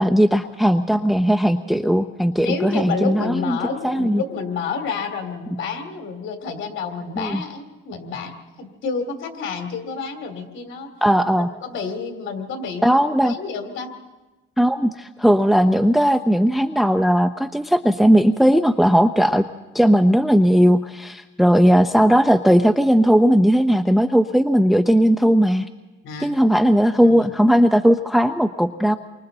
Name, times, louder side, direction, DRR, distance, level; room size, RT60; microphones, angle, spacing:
voice 1, 0.0-3.6 3.8-4.2 7.2-7.4 11.0-11.5 12.8-13.3 14.6-19.5 19.7-25.6 26.2-29.0, equal, ahead, 9 dB, 0.6 m, -17 dB
voice 2, 2.4-8.3 8.6-10.9 11.4-13.9 26.0-26.3 27.0-27.3, left 5 dB, 75° left, 5 dB, 2.7 m, -29 dB
29.0 x 24.0 x 4.0 m, 1.1 s
cardioid pair, 90°, 20 cm